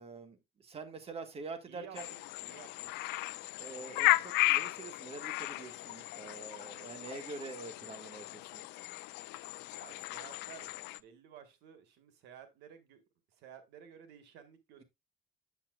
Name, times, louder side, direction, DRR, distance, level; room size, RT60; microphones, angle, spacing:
voice 1, 0.0-2.1 3.6-8.6, right 4 dB, 35° right, 1.7 m, -46 dB
voice 2, 1.7-3.0 9.7-13.0 13.3-14.8, right 8 dB, 85° right, 1.5 m, -54 dB
sound 1, 1.9-11.0, left 20 dB, 85° left, 0.4 m, -35 dB
8.7 x 7.5 x 2.4 m
cardioid pair, 110°, 17 cm